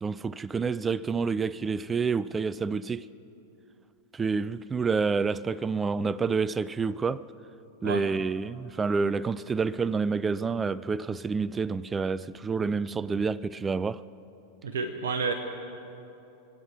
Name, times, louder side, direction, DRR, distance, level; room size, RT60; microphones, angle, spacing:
voice 1, 0.0-3.1 4.1-7.3 7.8-14.0, right 5 dB, 15° right, 0.4 m, -28 dB
voice 2, 14.6-15.3, right 4 dB, 65° right, 1.1 m, -29 dB
26.0 x 9.0 x 6.2 m
figure-of-eight pair, 90°, 0 cm